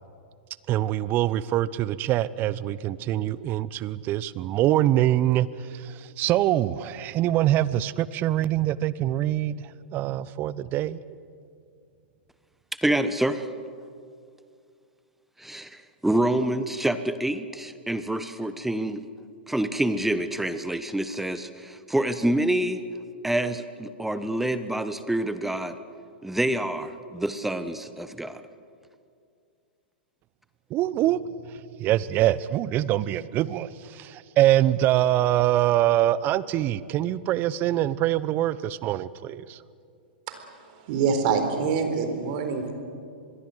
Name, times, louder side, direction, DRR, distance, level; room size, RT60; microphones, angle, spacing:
voice 1, 0.7-11.0 30.7-31.2 31.8-39.6, right 13 dB, 35° right, 18 dB, 0.8 m, -24 dB
voice 2, 12.8-13.5 15.4-19.1 19.5-22.8 23.2-25.8 26.2-28.4, right 1 dB, 5° right, 11 dB, 1.1 m, -27 dB
voice 3, 40.3-42.7, right 5 dB, 55° right, 7 dB, 4.1 m, -26 dB
25.5 x 21.5 x 7.9 m, 2.3 s
hypercardioid pair, 115°, 6 cm